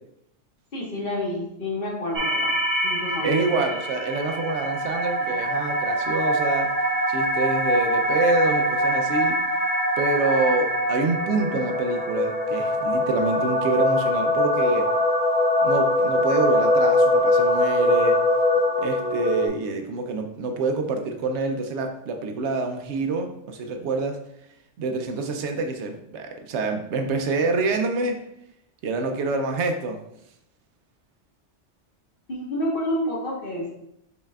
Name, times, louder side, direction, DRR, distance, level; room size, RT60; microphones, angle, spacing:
voice 1, 0.7-2.5 2.8-3.4 32.3-33.7, equal, 50° left, -4 dB, 1.5 m, -29 dB
sound 1, 2.1-19.5, left 1 dB, 45° right, 1.0 m, -23 dB
voice 2, 3.2-6.7 7.1-9.4 10.0-14.9 15.6-18.2 18.8-24.2 24.8-28.2 28.8-30.0, right 3 dB, 75° right, 5 dB, 0.9 m, -26 dB
5.4 x 4.1 x 2.3 m, 0.78 s
omnidirectional pair, 1.2 m